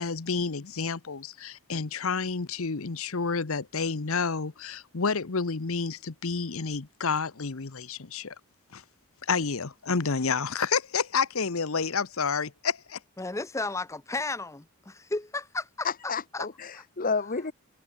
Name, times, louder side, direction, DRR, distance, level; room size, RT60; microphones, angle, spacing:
voice 1, 0.0-8.3 8.7-8.8 9.3-13.0, left 5 dB, 65° left, 1.0 m, -29 dB
voice 2, 13.2-15.9 16.3-16.5 16.7-16.8, left 2 dB, 15° left, 0.6 m, -33 dB
voice 3, 15.8-17.5, left 5 dB, 40° left, 0.9 m, -31 dB
head